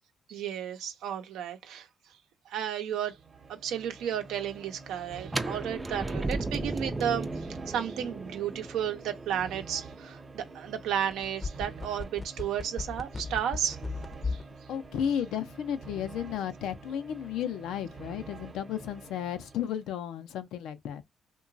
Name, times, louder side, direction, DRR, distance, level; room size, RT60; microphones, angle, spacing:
voice 1, 0.3-1.9 2.5-3.2 3.5-7.3 7.7-13.8 14.3-14.4, right 9 dB, 85° right, 0.7 m, -33 dB
sound 1, 3.1-19.9, right 4 dB, 35° right, 0.9 m, -48 dB
sound 2, 5.3-11.1, right 2 dB, 15° right, 0.4 m, -36 dB
sound 3, 11.1-14.5 14.8-14.9, left 4 dB, 25° left, 0.6 m, -35 dB
voice 2, 14.7-21.0, left 9 dB, 85° left, 0.5 m, -33 dB
2.9 x 2.2 x 2.6 m
cardioid pair, 90°, 0 cm